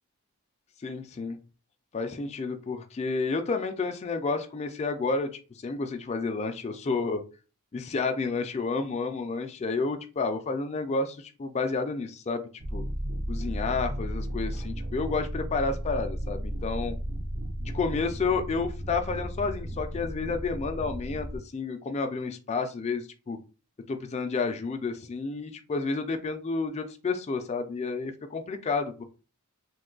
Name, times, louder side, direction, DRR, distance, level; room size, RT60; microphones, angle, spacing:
voice 1, 0.8-1.4 1.9-5.3 5.6-7.2 7.7-12.4 12.7-12.8 13.3-17.0 17.6-23.4 23.9-29.0, left 4 dB, 30° left, 6 dB, 0.3 m, -30 dB
sound 1, 12.6-21.4, equal, 30° right, 0.5 m, -34 dB
2.5 x 2.2 x 3.8 m, 0.34 s
head